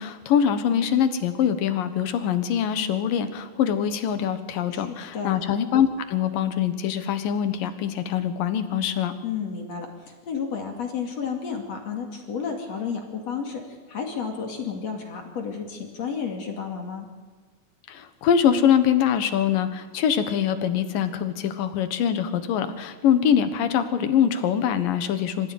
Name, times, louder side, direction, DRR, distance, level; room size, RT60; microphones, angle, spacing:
voice 1, 0.0-9.1 17.9-25.5, left 8 dB, 80° left, 10 dB, 3.1 m, -23 dB
voice 2, 4.7-5.4 9.2-17.1, left 6 dB, 50° left, 2 dB, 3.5 m, -32 dB
25.0 x 15.0 x 9.5 m, 1.4 s
omnidirectional pair, 3.9 m